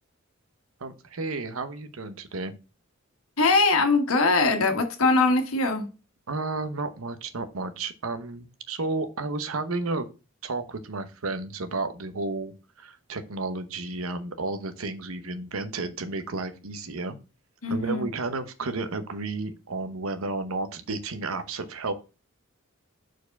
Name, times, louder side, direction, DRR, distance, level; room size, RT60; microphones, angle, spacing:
voice 1, 0.8-2.5 6.3-10.1 10.4-12.5 12.8-17.2 17.7-21.9, right 3 dB, 85° right, 0.9 m, -32 dB
voice 2, 3.4-5.9 17.6-18.0, left 3 dB, 85° left, 1.4 m, -22 dB
4.6 x 4.6 x 5.9 m
head